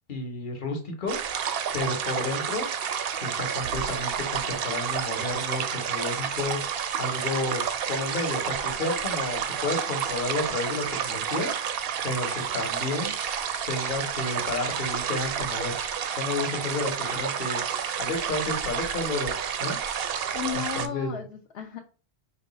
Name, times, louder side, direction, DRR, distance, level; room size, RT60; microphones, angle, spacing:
voice 1, 0.1-1.2 1.7-2.7 3.2-6.6 7.0-7.6 7.9-11.5 12.0-13.1 13.7-15.7 16.2-17.6 18.0-19.3 19.6-19.7 20.5-21.2, left 3 dB, 50° left, 4 dB, 1.2 m, -31 dB
sound 1, 1.1-20.9, right 8 dB, 65° right, 0.7 m, -30 dB
voice 2, 20.3-21.8, left 8 dB, 65° left, 2 dB, 0.9 m, -34 dB
5.2 x 2.4 x 4.0 m, 0.37 s
omnidirectional pair, 1.1 m